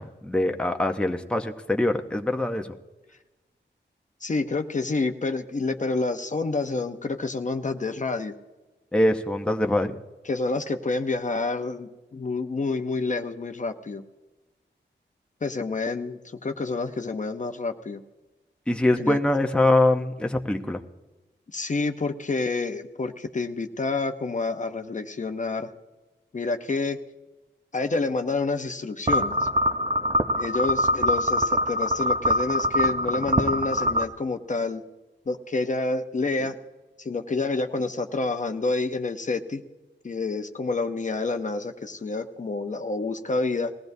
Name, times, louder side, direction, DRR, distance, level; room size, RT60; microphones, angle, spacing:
voice 1, 0.0-2.8 8.9-10.0 18.7-20.8 36.4-36.5, left 1 dB, 5° left, 4 dB, 0.7 m, -23 dB
voice 2, 4.2-8.3 10.3-14.0 15.4-18.0 19.0-19.2 21.5-25.7 26.3-27.0 27.7-29.5 30.4-34.8 35.3-36.5 37.0-39.6 40.0-43.7, left 3 dB, 40° left, 7 dB, 0.7 m, -28 dB
sound 1, 29.1-34.0, equal, 30° right, 0.7 m, -24 dB
20.0 x 15.5 x 2.7 m, 1.1 s
wide cardioid pair, 105°, 19 cm